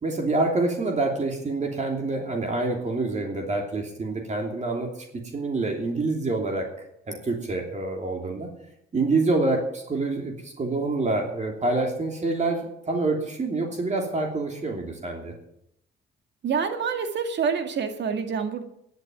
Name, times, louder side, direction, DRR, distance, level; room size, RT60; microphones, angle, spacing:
voice 1, 0.0-4.9 5.3-6.6 7.1-8.5 8.9-12.6 12.9-15.3, right 3 dB, 35° right, 2 dB, 3.0 m, -26 dB
voice 2, 16.4-18.6, right 6 dB, 60° right, 6 dB, 2.0 m, -27 dB
11.0 x 8.3 x 9.4 m, 0.75 s
cardioid pair, 90°, 20 cm